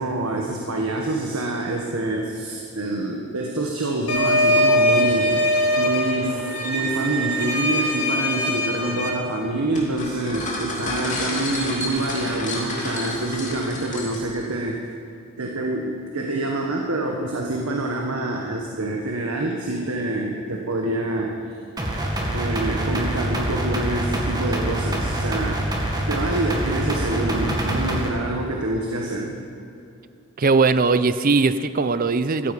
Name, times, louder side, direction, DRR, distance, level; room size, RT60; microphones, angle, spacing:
voice 1, 0.0-14.8 15.4-21.4 22.3-25.6 26.1-29.4, right 2 dB, 80° right, 0 dB, 1.4 m, -26 dB
sound 1, 4.1-9.1, equal, 75° left, 2.0 m, -21 dB
sound 2, 9.7-14.4, left 2 dB, 35° left, 2.8 m, -30 dB
sound 3, 21.8-28.1, right 1 dB, 20° right, 1.8 m, -25 dB
voice 2, 30.4-32.5, right 4 dB, 40° right, 13 dB, 0.6 m, -19 dB
15.0 x 14.0 x 5.4 m, 2.5 s
head